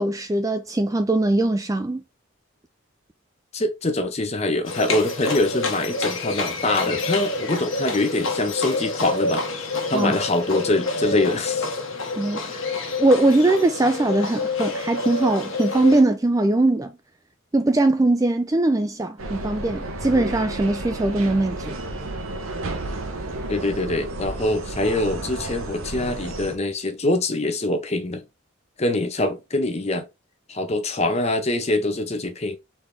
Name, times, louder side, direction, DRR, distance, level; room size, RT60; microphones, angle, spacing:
voice 1, 0.0-2.0 9.9-10.1 12.2-12.4 13.0-16.9 17.5-21.8, right 2 dB, 15° right, 0.3 m, -21 dB
voice 2, 3.5-11.7 12.4-12.8 23.5-28.2 28.8-30.1 30.5-32.6, left 2 dB, 30° left, 0.8 m, -24 dB
Livestock farm animals working animals, 4.6-16.0, left 3 dB, 75° left, 1.3 m, -28 dB
sound 1, 19.2-26.6, right 2 dB, 90° right, 0.9 m, -32 dB
4.2 x 3.4 x 3.3 m
head